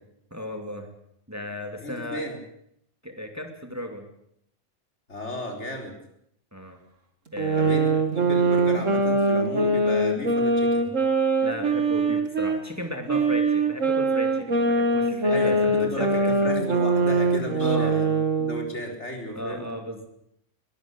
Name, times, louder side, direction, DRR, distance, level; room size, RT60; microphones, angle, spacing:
voice 1, 0.3-0.9 1.3-2.3 3.0-4.1 6.5-6.8 7.3-7.9 11.4-16.3 17.6-18.0 19.3-20.1, equal, 15° right, 4 dB, 2.7 m, -35 dB
voice 2, 1.8-2.4 5.1-6.0 7.6-10.9 15.3-18.1 18.4-19.7, equal, 65° left, 3 dB, 4.5 m, -34 dB
sound 1, 7.4-12.6 13.1-18.7, right 2 dB, 85° right, 2.5 m, -23 dB
22.0 x 13.5 x 10.0 m, 0.75 s
omnidirectional pair, 1.3 m